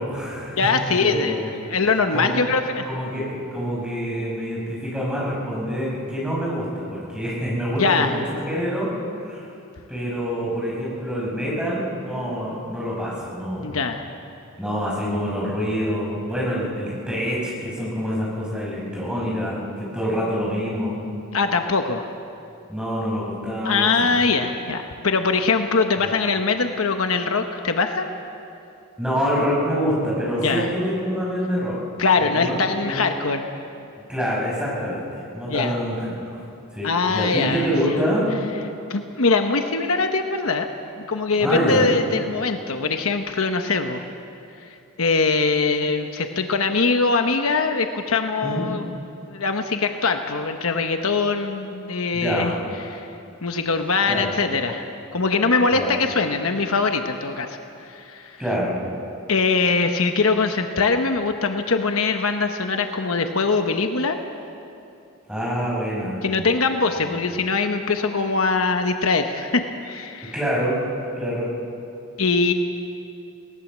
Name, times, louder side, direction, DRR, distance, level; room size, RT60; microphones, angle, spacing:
voice 1, 0.0-1.5 2.1-2.4 2.8-8.9 9.2-9.4 9.9-13.8 14.6-21.0 22.7-24.1 26.0-26.2 29.0-31.8 32.2-33.0 34.1-35.0 35.3-36.1 36.7-38.3 41.4-41.8 48.4-48.7 52.1-52.5 54.1-54.3 55.7-55.9 58.4-58.7 65.3-66.2 67.0-67.1 70.3-70.8 71.2-71.5, equal, 5° right, -5 dB, 6.0 m, -26 dB
voice 2, 0.6-1.4 1.7-2.8 7.8-8.2 13.6-14.0 21.3-22.1 23.6-28.1 30.4-30.7 32.0-33.4 35.5-35.7 36.8-37.7 38.9-40.7 41.0-44.0 45.0-49.0 49.3-52.5 52.9-53.1 53.4-58.4 59.3-64.2 66.2-70.3 72.2-72.5, left 4 dB, 70° left, 6 dB, 1.1 m, -22 dB
20.5 x 18.5 x 7.4 m, 2.7 s
head